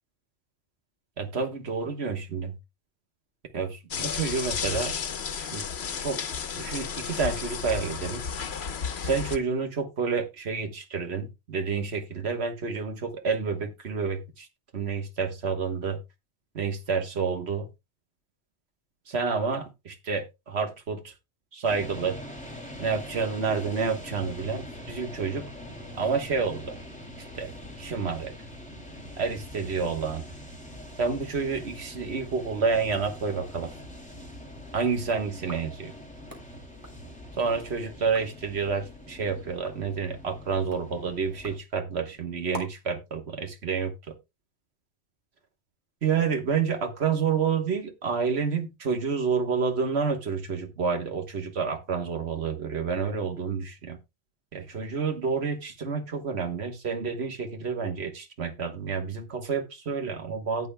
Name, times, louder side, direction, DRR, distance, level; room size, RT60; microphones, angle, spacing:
voice 1, 1.2-2.5 3.5-4.9 5.4-5.7 6.0-6.2 6.5-8.2 9.0-14.5 14.7-16.0 16.5-17.7 19.1-21.1 21.5-22.2 22.8-25.4 25.9-26.8 27.4-27.5 27.8-28.3 29.2-30.2 31.0-33.7 34.7-35.9 37.4-44.1 46.0-54.0 54.5-60.7, right 5 dB, 90° right, 1.6 m, -29 dB
sound 1, 3.9-9.4, left 6 dB, 85° left, 1.2 m, -33 dB
sound 2, 21.6-41.6, equal, 5° left, 2.8 m, -43 dB
sound 3, 35.3-37.7 38.0-38.5 38.9-42.9, equal, 20° right, 3.4 m, -47 dB
17.5 x 6.4 x 2.2 m
omnidirectional pair, 1.1 m